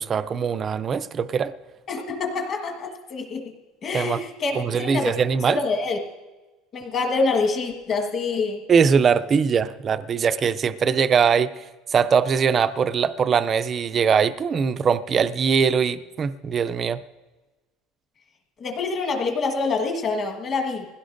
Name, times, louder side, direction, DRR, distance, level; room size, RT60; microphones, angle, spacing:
voice 1, 0.0-1.5 3.9-4.2 4.5-5.6 8.7-11.6 11.9-17.0, right 6 dB, 20° right, 14 dB, 0.4 m, -21 dB
voice 2, 1.9-3.4 3.8-5.1 5.5-6.0 6.7-8.6 18.6-20.9, left 4 dB, 30° left, 3 dB, 1.4 m, -26 dB
21.0 x 16.5 x 2.6 m, 1.2 s
cardioid pair, 180°, 0 cm